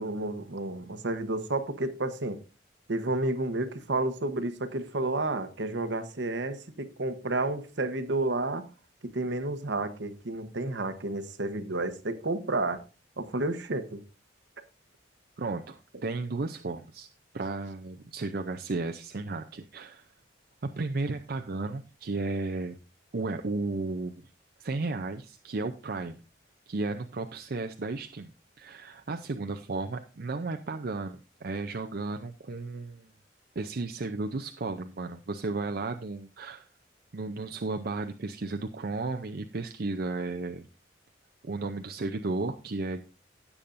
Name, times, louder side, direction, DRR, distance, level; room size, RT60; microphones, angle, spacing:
voice 1, 0.0-2.4 2.9-8.6 9.0-12.8 13.2-14.0, right 2 dB, 70° right, 1.0 m, -31 dB
voice 2, 15.4-17.1 17.3-20.1 20.6-22.8 23.1-24.1 24.6-26.2 26.7-28.3 28.6-33.1 33.6-36.7 37.1-40.7 41.4-43.0, right 3 dB, 55° right, 0.6 m, -34 dB
17.0 x 7.1 x 2.6 m
head